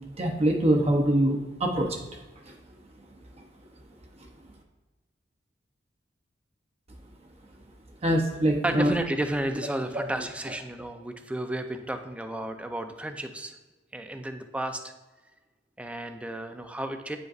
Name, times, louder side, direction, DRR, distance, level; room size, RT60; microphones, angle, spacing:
voice 1, 0.2-2.0 8.0-8.9, right 1 dB, 35° right, 1 dB, 0.7 m, -23 dB
voice 2, 8.6-13.5 13.9-14.9 15.8-17.2, right 1 dB, 5° right, 6 dB, 0.4 m, -32 dB
9.1 x 5.2 x 2.4 m, 1.2 s
head